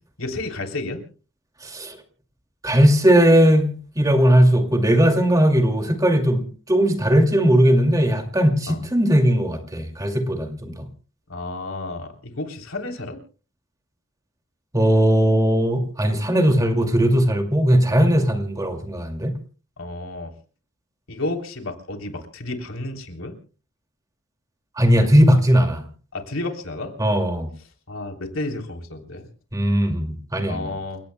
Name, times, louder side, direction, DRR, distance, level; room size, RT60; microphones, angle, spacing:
voice 1, 0.2-1.0 8.7-8.8 11.3-13.2 19.8-20.3 21.1-23.3 26.1-26.9 27.9-29.2 30.5-31.0, left 2 dB, 85° left, 3.4 m, -31 dB
voice 2, 1.6-2.0 2.6-6.4 6.7-10.7 14.7-19.3 24.8-25.8 27.0-27.5 29.5-30.7, equal, 15° right, 2.3 m, -18 dB
29.0 x 17.0 x 2.2 m
head